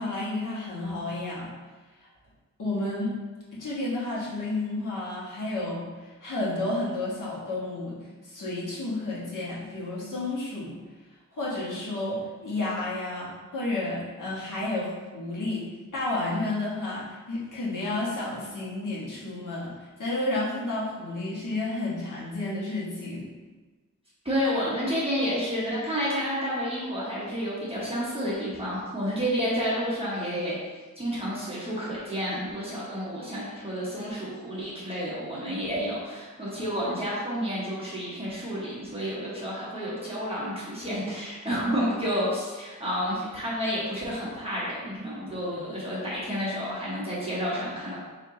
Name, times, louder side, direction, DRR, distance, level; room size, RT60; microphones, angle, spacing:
voice 1, 0.0-1.5 2.6-3.2 3.5-10.8 11.3-23.3, left 2 dB, 70° left, -7 dB, 1.4 m, -31 dB
voice 2, 24.2-30.6 31.0-48.0, equal, 15° right, -8 dB, 1.0 m, -30 dB
4.4 x 2.8 x 3.7 m, 1.3 s
wide cardioid pair, 125°, 33 cm